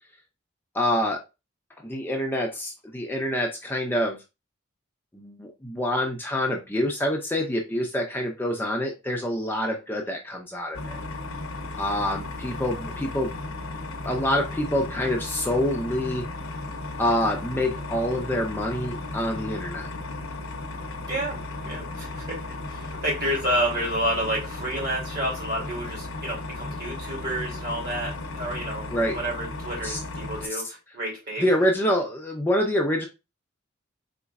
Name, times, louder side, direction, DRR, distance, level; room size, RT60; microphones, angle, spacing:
voice 1, 0.7-1.2 1.8-4.2 5.1-11.0 11.8-13.3 14.0-16.3 17.0-19.9 28.9-29.2 29.8-30.0 31.4-33.1, left 1 dB, 10° left, 1 dB, 0.6 m, -26 dB
sound 1, 10.7-30.5, left 2 dB, 80° left, 0.7 m, -35 dB
voice 2, 21.1-21.4 21.6-28.9 29.1-31.5, right 1 dB, 50° right, -3 dB, 2.7 m, -30 dB
4.3 x 4.1 x 2.4 m, 0.26 s
head